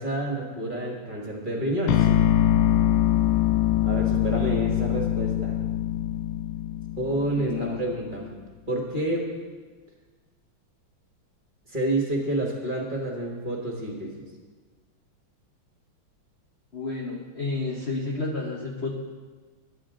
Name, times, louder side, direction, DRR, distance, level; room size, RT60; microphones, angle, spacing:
voice 1, 0.0-2.1 3.8-5.6 7.0-8.3 8.7-9.3 11.7-14.2, right 1 dB, 25° right, -1 dB, 1.6 m, -29 dB
sound 1, 1.9-7.9, left 12 dB, 90° left, 1.4 m, -23 dB
voice 2, 7.4-7.8 16.7-18.9, left 3 dB, 45° left, 0 dB, 0.9 m, -31 dB
13.5 x 11.0 x 3.8 m, 1.4 s
omnidirectional pair, 2.2 m